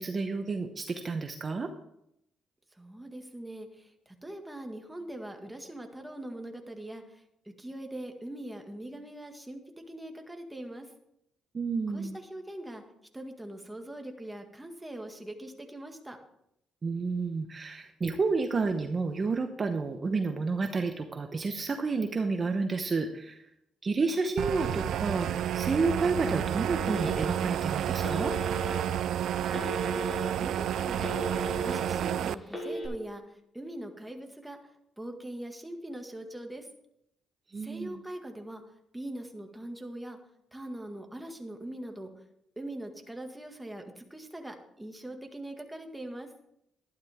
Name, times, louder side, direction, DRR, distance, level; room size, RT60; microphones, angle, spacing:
voice 1, 0.0-1.7 11.5-12.2 16.8-23.4 23.8-28.3 37.5-38.0, right 4 dB, 35° right, 6 dB, 0.9 m, -30 dB
voice 2, 2.8-7.2 7.6-9.6 9.9-10.9 11.9-12.8 13.1-16.2 29.3-30.1 30.4-31.2 31.5-34.6 35.0-36.7 37.6-38.6 38.9-40.2 40.5-42.1 42.6-46.3, right 1 dB, 10° right, 4 dB, 1.9 m, -42 dB
sound 1, 24.4-32.3, right 10 dB, 75° right, 0.4 m, -30 dB
Telephone, 26.9-27.6 28.0-28.8 29.5-30.3 30.7-31.8 32.4-32.9, right 1 dB, 15° left, 5.7 m, -35 dB
12.5 x 11.5 x 3.6 m, 0.78 s
cardioid pair, 90°, 0 cm